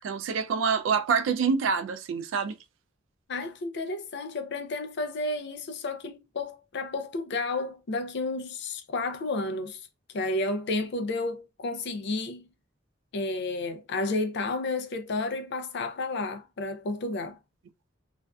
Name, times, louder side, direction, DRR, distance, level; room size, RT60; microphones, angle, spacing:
voice 1, 0.0-2.6, right 6 dB, 75° right, 0.3 m, -26 dB
voice 2, 3.3-9.8 10.1-12.5 13.1-17.4, left 2 dB, 60° left, 0.4 m, -31 dB
2.4 x 2.2 x 2.3 m
head